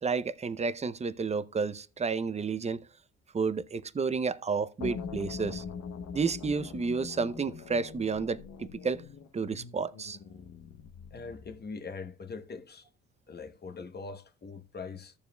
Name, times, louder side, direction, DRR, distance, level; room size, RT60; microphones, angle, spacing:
voice 1, 0.0-2.8 3.3-5.6 6.1-9.0 9.3-10.2, right 5 dB, 20° right, 0.6 m, -31 dB
sound 1, 4.8-11.7, left 6 dB, 60° left, 0.9 m, -42 dB
voice 2, 11.1-12.9 13.3-15.1, left 4 dB, 35° left, 0.9 m, -42 dB
14.5 x 7.0 x 2.2 m
cardioid pair, 90°, 30 cm